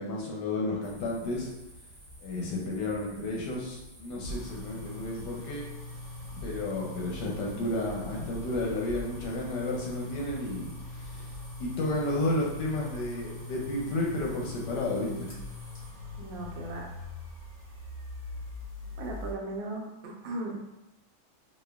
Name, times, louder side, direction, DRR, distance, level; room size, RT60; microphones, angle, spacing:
voice 1, 0.0-1.5 2.2-5.7 6.4-11.3 11.6-15.3, left 2 dB, 75° left, -2 dB, 1.1 m, -32 dB
sound 1, 0.8-15.9, equal, 25° right, 0.9 m, -52 dB
sound 2, 4.2-19.3, left 2 dB, 30° left, 0.8 m, -41 dB
voice 2, 16.2-16.9 19.0-20.6, right 2 dB, 75° right, -1 dB, 1.3 m, -37 dB
4.1 x 2.7 x 2.2 m, 0.96 s
omnidirectional pair, 2.1 m